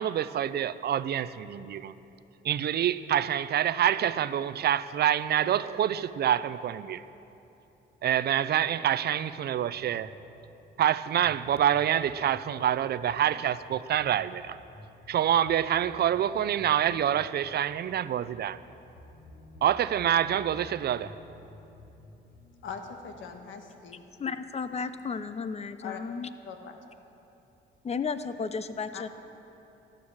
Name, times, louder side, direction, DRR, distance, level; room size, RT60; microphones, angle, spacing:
voice 1, 0.0-1.9 2.4-7.0 8.0-10.1 10.8-14.6 15.1-18.6 19.6-21.1, right 10 dB, 55° right, 15 dB, 0.5 m, -26 dB
sound 1, 9.7-10.6 11.2-23.2, left 1 dB, 55° left, 3.4 m, -52 dB
voice 2, 22.6-24.0 25.8-26.0 26.4-26.8 28.9-29.1, left 6 dB, 75° left, 5 dB, 1.4 m, -41 dB
voice 3, 24.2-26.3 27.8-29.1, left 5 dB, 30° left, 12 dB, 0.7 m, -33 dB
14.5 x 10.5 x 6.4 m, 2.9 s
cardioid pair, 90°, 20 cm